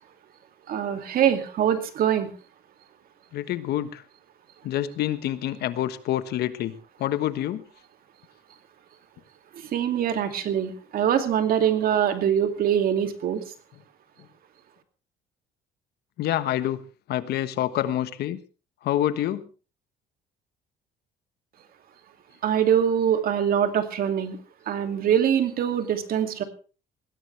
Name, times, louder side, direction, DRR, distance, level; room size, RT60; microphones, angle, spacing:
voice 1, 0.7-2.3 9.7-13.4 22.4-24.4 24.7-26.4, right 9 dB, 60° right, 7 dB, 2.5 m, -23 dB
voice 2, 3.3-4.0 4.6-6.7 7.0-7.6 16.2-16.8 17.1-18.4 18.8-19.5, left 12 dB, 70° left, 13 dB, 1.3 m, -27 dB
20.0 x 16.5 x 3.4 m, 0.36 s
cardioid pair, 110°, 17 cm